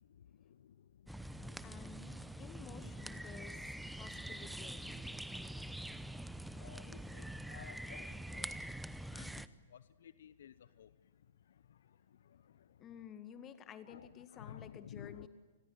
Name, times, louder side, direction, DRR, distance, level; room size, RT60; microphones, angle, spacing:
voice 1, 0.5-0.9 1.1-2.3 6.5-8.7 9.1-9.3 9.7-10.9 11.7-11.8 12.3-12.5 13.9-14.1 14.3-15.3, left 9 dB, 65° left, 16 dB, 0.8 m, -54 dB
sound 1, 1.1-9.5, right 1 dB, ahead, 0.8 m, -45 dB
voice 2, 1.6-2.1 2.4-3.6 4.0-5.2 6.1-6.2 12.8-15.3, left 8 dB, 25° left, 10 dB, 2.0 m, -53 dB
29.5 x 21.0 x 9.0 m, 1.4 s
figure-of-eight pair, 110°, 0 cm